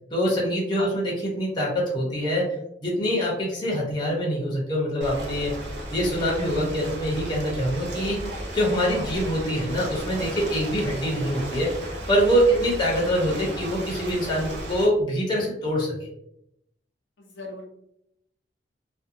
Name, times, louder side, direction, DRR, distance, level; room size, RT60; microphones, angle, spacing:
voice 1, 0.1-2.6 2.8-5.5 5.9-8.2 8.5-11.7 12.1-16.1, equal, 25° left, -3 dB, 0.6 m, -24 dB
Ocean, 5.0-14.9, right 1 dB, 70° right, 0.6 m, -35 dB
voice 2, 12.5-12.8 17.2-17.6, left 1 dB, 85° left, -1 dB, 0.6 m, -37 dB
2.6 x 2.1 x 2.5 m, 0.79 s
head